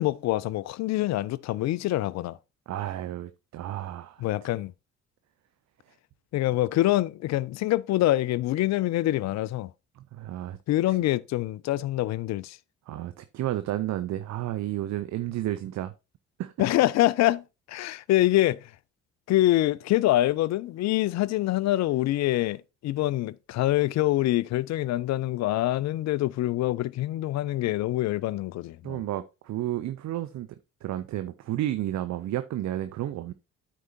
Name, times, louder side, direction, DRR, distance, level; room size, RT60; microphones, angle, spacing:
voice 1, 0.0-2.4 4.2-4.7 6.3-9.7 10.7-12.6 16.6-17.4 17.7-18.7 19.3-29.0, left 15 dB, 45° left, 0.5 m, -25 dB
voice 2, 2.7-4.2 9.9-10.6 10.9-11.0 12.9-15.9 16.4-16.7 28.8-30.5 30.8-33.3, right 13 dB, 45° right, 0.6 m, -32 dB
13.0 x 4.6 x 2.6 m
figure-of-eight pair, 45°, 38 cm